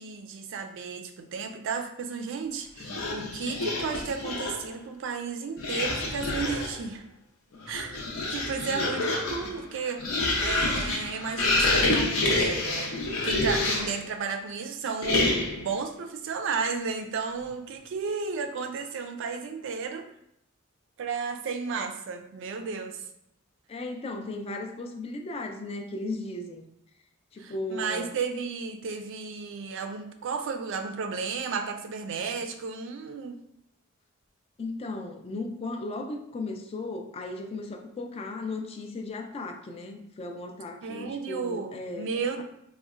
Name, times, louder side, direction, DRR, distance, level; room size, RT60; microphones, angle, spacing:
voice 1, 0.0-7.0 7.7-8.0 8.3-10.1 10.4-20.1 21.0-23.0 27.4-33.4 40.8-42.4, right 5 dB, 60° right, 6 dB, 0.3 m, -33 dB
sound 1, 2.8-4.7 5.6-6.8 7.5-14.0 15.0-15.7, left 2 dB, 75° left, 0.6 m, -28 dB
voice 2, 23.7-26.6 27.3-28.1 34.6-42.1, left 2 dB, 30° left, 4 dB, 0.3 m, -36 dB
3.8 x 2.1 x 2.4 m, 0.77 s
head